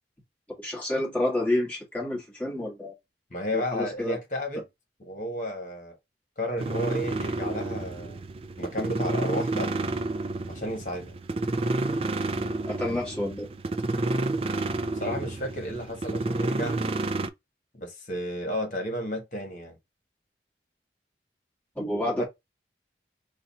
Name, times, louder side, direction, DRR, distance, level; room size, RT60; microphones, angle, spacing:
voice 1, 0.6-2.9 3.5-4.2 12.4-13.5 21.8-22.2, left 1 dB, 10° left, 2.0 m, -29 dB
voice 2, 3.3-4.6 5.0-5.9 6.4-8.2 8.6-9.7 10.5-11.1 14.9-16.8 17.7-19.8 22.2-22.3, equal, 45° left, 1.6 m, -32 dB
sound 1, 6.6-17.3, right 2 dB, 30° right, 0.4 m, -30 dB
4.0 x 2.6 x 4.1 m
head